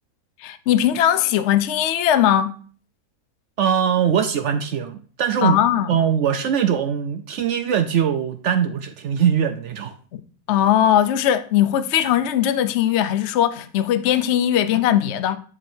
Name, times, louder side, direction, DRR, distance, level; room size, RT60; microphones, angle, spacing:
voice 1, 0.4-2.5 5.4-6.0 10.1-10.2 10.5-15.4, left 11 dB, 65° left, 0.7 m, -19 dB
voice 2, 3.6-5.6 5.9-9.9, right 8 dB, 65° right, 0.8 m, -21 dB
7.9 x 7.6 x 2.7 m
omnidirectional pair, 1.6 m